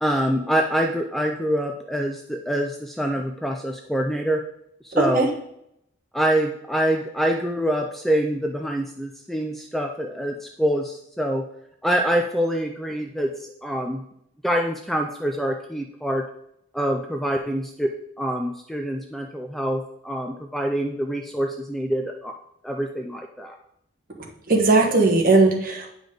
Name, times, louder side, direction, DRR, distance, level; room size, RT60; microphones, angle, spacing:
voice 1, 0.0-4.4 4.8-5.3 6.1-11.4 11.8-14.0 14.4-16.2 16.7-22.3 22.6-23.6, equal, ahead, 3 dB, 0.4 m, -25 dB
voice 2, 5.0-5.3 24.5-25.9, right 3 dB, 45° right, 0 dB, 1.4 m, -18 dB
9.3 x 5.1 x 3.9 m, 0.76 s
head